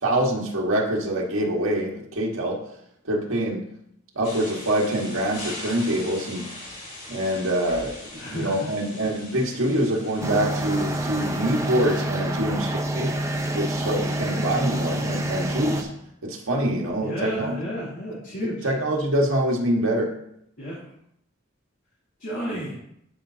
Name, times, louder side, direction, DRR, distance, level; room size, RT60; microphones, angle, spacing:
voice 1, 0.0-2.6 3.1-3.6 4.1-6.5 7.1-13.2 13.5-15.9 16.2-17.6 18.4-20.1, right 1 dB, 85° right, -1 dB, 1.6 m, -25 dB
sound 1, 4.2-12.0, left 1 dB, 40° left, 3.4 m, -41 dB
voice 2, 8.1-8.7 17.0-18.7 20.6-20.8 22.2-22.8, equal, 65° left, -10 dB, 3.0 m, -32 dB
sound 2, 10.2-15.8, right 1 dB, 15° right, 0.8 m, -27 dB
12.5 x 5.2 x 2.8 m, 0.74 s
head